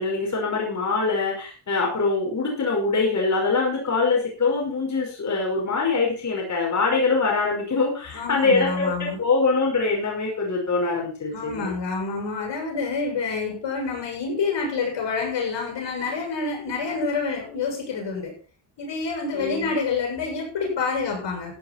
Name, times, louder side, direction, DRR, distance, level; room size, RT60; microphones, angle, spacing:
voice 1, 0.0-11.7 19.3-19.7, left 4 dB, 40° left, -2 dB, 5.3 m, -24 dB
voice 2, 8.1-9.2 11.3-18.3 18.8-21.6, left 4 dB, 75° left, 1 dB, 7.5 m, -28 dB
16.0 x 9.2 x 4.5 m, 0.37 s
cardioid pair, 105°, 43 cm